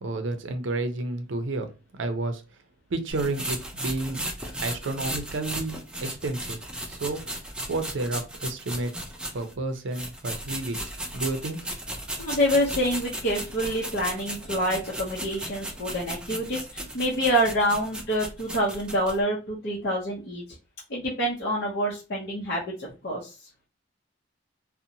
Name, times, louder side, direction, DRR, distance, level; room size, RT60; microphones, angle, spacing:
voice 1, 0.0-2.4 2.9-4.3 4.6-6.6 6.9-7.3 7.7-8.9 9.3-11.7, right 2 dB, 75° right, 8 dB, 0.5 m, -31 dB
sound 1, 3.1-9.5 9.9-19.2, right 1 dB, 5° right, 0.4 m, -36 dB
voice 2, 12.2-20.4 20.9-23.3, equal, 55° left, -5 dB, 0.6 m, -27 dB
2.6 x 2.1 x 2.6 m, 0.30 s
head